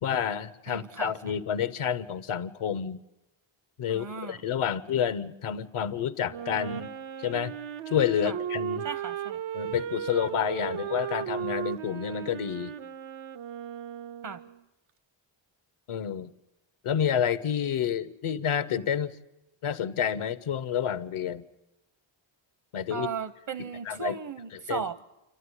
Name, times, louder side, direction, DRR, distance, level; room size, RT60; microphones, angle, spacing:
voice 1, 0.0-3.0 3.8-6.9 7.2-7.5 7.9-8.9 9.5-12.7 15.9-16.3 16.8-19.1 19.6-21.4 22.7-23.1 23.9-24.1 24.7-24.9, left 8 dB, 85° left, 0.9 m, -29 dB
voice 2, 0.7-1.3 3.9-4.4 8.2-8.4 8.8-9.4 14.2-14.4 22.9-25.0, right 6 dB, 65° right, 1.0 m, -36 dB
Wind instrument woodwind instrument, 6.3-14.6, right 9 dB, 80° right, 0.7 m, -36 dB
29.0 x 12.5 x 9.7 m
cardioid pair, 60°, 49 cm